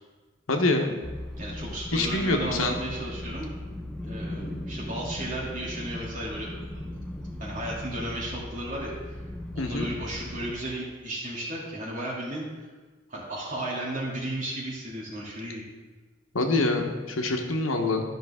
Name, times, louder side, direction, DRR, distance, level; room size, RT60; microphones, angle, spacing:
voice 1, 0.5-0.9 1.9-2.8 9.6-9.9 16.3-18.0, left 2 dB, 80° left, 3 dB, 1.1 m, -25 dB
sound 1, 1.0-10.5, left 1 dB, 5° left, 0.6 m, -38 dB
voice 2, 1.4-3.5 4.0-6.9 7.4-9.2 9.5-12.7 13.1-15.6, right 1 dB, 40° right, -6 dB, 2.6 m, -34 dB
13.0 x 5.9 x 3.7 m, 1.3 s
head